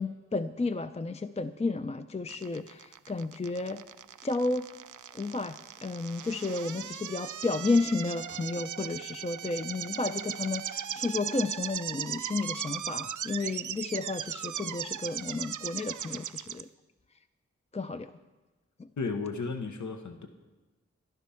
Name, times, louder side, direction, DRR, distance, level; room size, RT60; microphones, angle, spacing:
voice 1, 0.0-3.8 4.2-4.7 5.1-16.7 17.7-18.1 18.8-18.9, left 3 dB, 20° left, 10 dB, 0.4 m, -32 dB
sound 1, 2.3-16.6, right 9 dB, 85° right, 0.5 m, -38 dB
voice 2, 19.0-20.3, left 4 dB, 80° left, 6 dB, 1.0 m, -34 dB
13.5 x 11.5 x 5.6 m, 1.2 s
wide cardioid pair, 60°, 29 cm